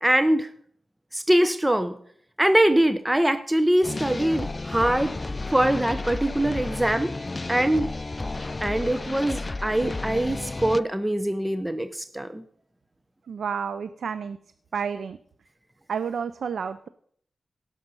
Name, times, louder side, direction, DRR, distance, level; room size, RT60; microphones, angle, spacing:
voice 1, 0.0-0.5 1.1-1.9 2.4-5.1 5.5-7.1 7.5-7.9 8.6-12.4, right 1 dB, 10° right, 11 dB, 0.8 m, -23 dB
sound 1, 3.8-10.8, left 2 dB, 35° left, 0.5 m, -32 dB
voice 2, 13.3-14.4 14.7-15.2 15.9-16.9, right 6 dB, 85° right, 13 dB, 0.5 m, -30 dB
17.0 x 6.5 x 5.5 m, 0.63 s
cardioid pair, 60°, 0 cm